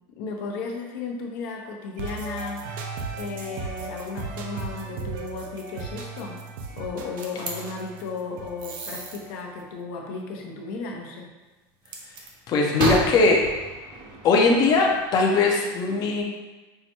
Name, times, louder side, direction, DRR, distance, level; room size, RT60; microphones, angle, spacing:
voice 1, 0.1-2.7 3.2-6.4 6.7-11.3, left 4 dB, 75° left, 1 dB, 0.7 m, -34 dB
sound 1, 2.0-9.8, right 4 dB, 85° right, 0.5 m, -37 dB
sound 2, 7.2-7.5 8.6-9.2 11.9-12.3 12.8-15.0, right 2 dB, 45° right, 0.7 m, -31 dB
voice 2, 12.5-13.4 14.2-16.2, left 3 dB, 35° left, 0 dB, 0.5 m, -20 dB
5.5 x 2.2 x 2.8 m, 1.2 s
supercardioid pair, 145°, 11 cm